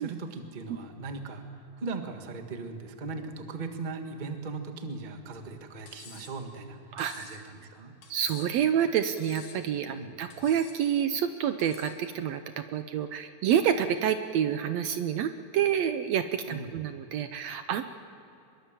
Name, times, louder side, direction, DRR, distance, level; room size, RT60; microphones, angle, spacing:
voice 1, 0.0-1.4 1.8-7.9 9.9-10.2 16.5-16.7, right 3 dB, 25° right, 5 dB, 1.0 m, -38 dB
Cutlery silverware, 5.9-6.4 7.0-7.4 8.0-8.6 9.2-9.7 10.3-10.8 11.6-12.0, left 6 dB, 80° left, 3.7 m, -50 dB
voice 2, 6.9-7.4 8.1-17.8, right 9 dB, 70° right, 9 dB, 1.8 m, -28 dB
24.0 x 22.0 x 7.4 m, 2.8 s
omnidirectional pair, 3.5 m